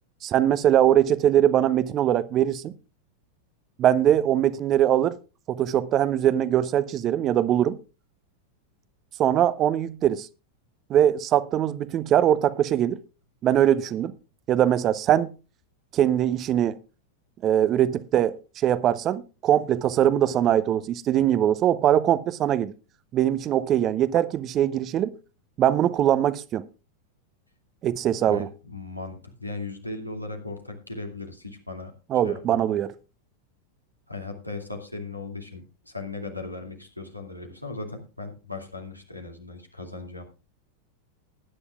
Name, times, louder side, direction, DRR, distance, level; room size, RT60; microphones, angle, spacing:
voice 1, 0.2-2.7 3.8-5.2 5.5-7.8 9.2-10.3 10.9-13.0 13.4-14.1 14.5-15.3 15.9-16.7 17.4-22.7 23.1-25.1 25.6-26.7 27.8-28.5 32.1-32.9, right 11 dB, 30° right, 0.7 m, -22 dB
voice 2, 28.1-32.7 34.1-40.2, left 3 dB, 90° left, 2.4 m, -37 dB
19.5 x 9.8 x 2.4 m
figure-of-eight pair, 90°, 0 cm